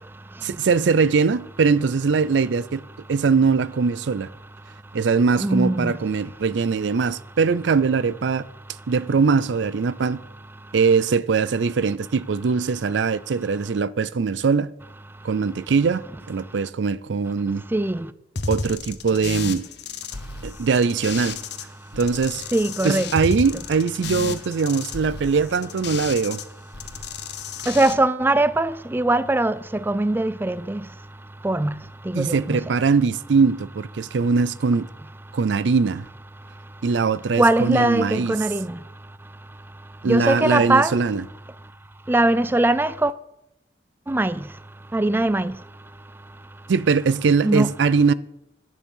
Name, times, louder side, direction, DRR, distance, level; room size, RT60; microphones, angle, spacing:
voice 1, 0.4-2.8 3.1-4.3 4.9-8.5 8.9-10.2 10.7-14.7 15.2-17.6 18.5-19.7 20.4-21.4 21.9-22.4 22.8-26.4 32.1-34.9 35.3-36.1 36.8-38.4 40.0-41.2 46.7-48.1, right 5 dB, 75° right, 0.4 m, -21 dB
voice 2, 5.4-5.9 17.7-18.1 22.5-23.1 27.7-30.8 31.4-31.8 32.1-32.6 37.4-38.8 40.1-41.0 42.1-43.1 44.1-44.4 44.9-45.5 47.4-47.7, right 2 dB, 10° right, 0.4 m, -21 dB
sound 1, 18.3-21.6 21.9-26.4 26.7-27.9, left 4 dB, 65° left, 1.1 m, -32 dB
10.5 x 9.9 x 5.5 m
head